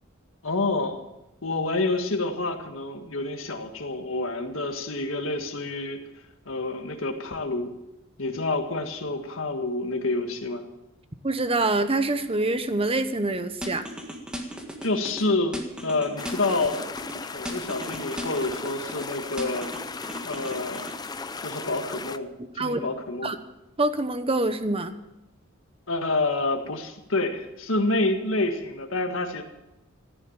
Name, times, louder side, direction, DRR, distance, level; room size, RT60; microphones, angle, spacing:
voice 1, 0.4-1.0 1.4-6.0 6.5-7.7 8.2-10.7 14.8-15.6 15.8-16.8 17.3-19.7 20.2-20.9 21.4-23.3 25.9-29.4, left 2 dB, 75° left, 4 dB, 1.8 m, -28 dB
voice 2, 11.2-13.8 22.6-22.8 23.2-23.4 23.8-24.9, right 2 dB, 30° right, 10 dB, 1.0 m, -25 dB
sound 1, 13.6-15.2 15.5-17.2 17.5-19.1 19.4-21.0, equal, 5° right, 1.7 m, -36 dB
sound 2, 16.2-22.2, left 4 dB, 20° left, 0.5 m, -36 dB
14.5 x 10.0 x 7.3 m, 0.93 s
head